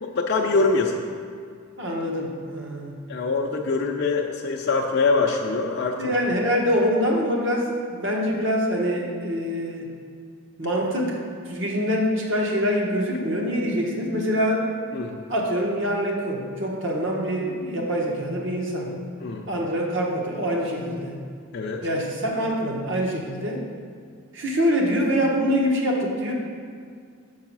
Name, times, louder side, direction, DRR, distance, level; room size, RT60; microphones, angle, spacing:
voice 1, 0.0-1.0 3.1-6.1 14.9-15.1 19.2-19.5 21.5-21.9, left 3 dB, 50° left, 0 dB, 0.5 m, -24 dB
voice 2, 1.8-3.0 6.0-9.9 10.6-11.2 11.5-14.7 15.3-18.9 19.5-21.2 21.8-23.6 24.3-26.3, equal, 60° right, -1 dB, 1.3 m, -25 dB
7.2 x 4.8 x 6.0 m, 2.2 s
head